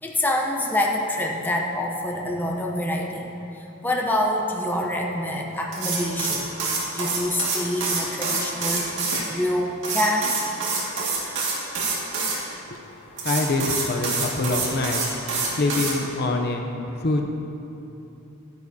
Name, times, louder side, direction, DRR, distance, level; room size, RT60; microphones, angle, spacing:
voice 1, 0.0-6.5 6.8-10.3, left 1 dB, 10° left, -1 dB, 0.7 m, -26 dB
sound 1, 5.7-9.2 9.8-12.4 13.2-15.9, right 4 dB, 60° right, 2.1 m, -26 dB
voice 2, 13.1-15.1 15.4-16.6 17.0-17.2, left 2 dB, 50° left, 3 dB, 0.6 m, -25 dB
12.0 x 10.5 x 2.8 m, 3.0 s
head